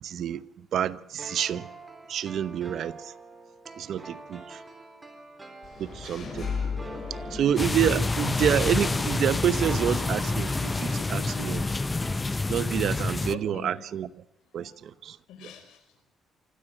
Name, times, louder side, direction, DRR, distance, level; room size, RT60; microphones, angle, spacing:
voice 1, 0.0-1.7 2.1-3.1 3.8-4.6 5.8-6.7 7.3-11.7 12.5-14.1 14.5-15.2, right 9 dB, 70° right, 0.9 m, -28 dB
voice 2, 0.7-1.1 13.3-13.8 14.6-14.8 15.3-16.1, left 6 dB, 90° left, 5.0 m, -46 dB
sound 1, 1.2-12.8 13.1-13.2, right 2 dB, 20° right, 4.2 m, -46 dB
Engine / Mechanisms, 5.6-11.6, left 5 dB, 50° left, 7.7 m, -37 dB
sound 2, 7.6-13.3, left 3 dB, 20° left, 0.6 m, -28 dB
25.0 x 14.5 x 7.5 m
cardioid pair, 90°, 0 cm